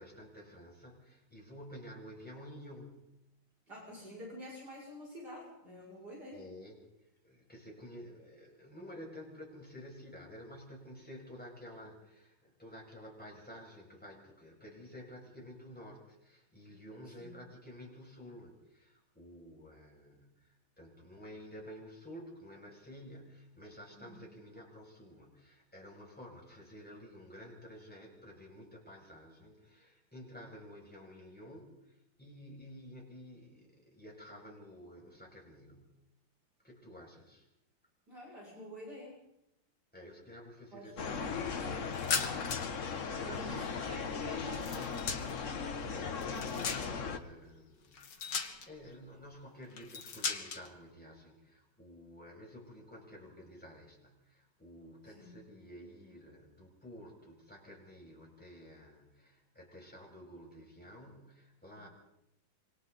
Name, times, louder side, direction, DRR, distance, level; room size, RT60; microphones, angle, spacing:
voice 1, 0.0-3.2 6.3-36.0 36.6-37.5 39.9-41.4 42.5-43.7 45.9-48.2 48.7-61.9, equal, 5° left, -2 dB, 6.8 m, -51 dB
voice 2, 3.7-6.4 17.2-17.3 24.0-24.1 38.1-39.2 40.7-41.3 41.6-41.9 42.2-42.5 43.3-45.0 55.1-55.4, left 1 dB, 50° right, -4 dB, 7.4 m, -47 dB
sound 1, 41.0-47.2, left 5 dB, 40° left, 1.4 m, -38 dB
sound 2, 41.9-42.8 43.1-45.5 46.0-47.1 47.9-48.9 49.7-50.7, left 5 dB, 60° left, 2.4 m, -38 dB
27.5 x 25.5 x 4.2 m, 0.82 s
omnidirectional pair, 2.3 m